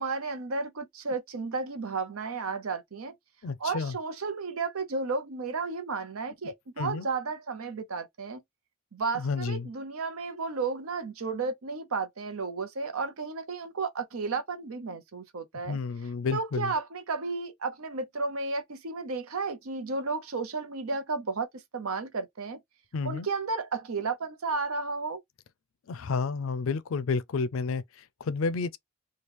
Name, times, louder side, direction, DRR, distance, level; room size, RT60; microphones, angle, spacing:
voice 1, 0.0-3.1 3.6-8.4 8.9-15.8 16.3-22.6 23.0-25.2, right 4 dB, 80° right, 0.7 m, -33 dB
voice 2, 3.4-4.0 6.8-7.1 9.1-9.7 15.7-16.7 22.9-23.3 25.9-28.8, left 4 dB, 70° left, 0.4 m, -31 dB
3.0 x 2.3 x 3.2 m
head